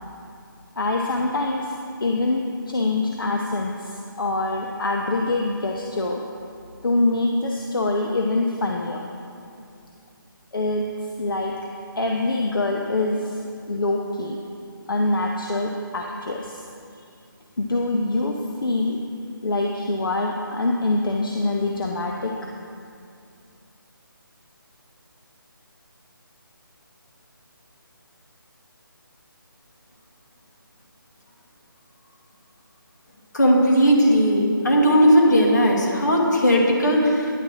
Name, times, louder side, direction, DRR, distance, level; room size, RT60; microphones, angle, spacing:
voice 1, 0.8-1.7 2.0-6.2 6.8-9.0 10.5-10.9 11.2-11.5 12.0-13.4 13.7-14.4 14.9-16.6 17.6-19.0 19.4-22.3, left 2 dB, 70° left, 1 dB, 0.7 m, -24 dB
voice 2, 33.3-37.3, equal, 55° left, -2 dB, 1.5 m, -17 dB
10.0 x 3.8 x 6.2 m, 2.5 s
figure-of-eight pair, 180°, 12 cm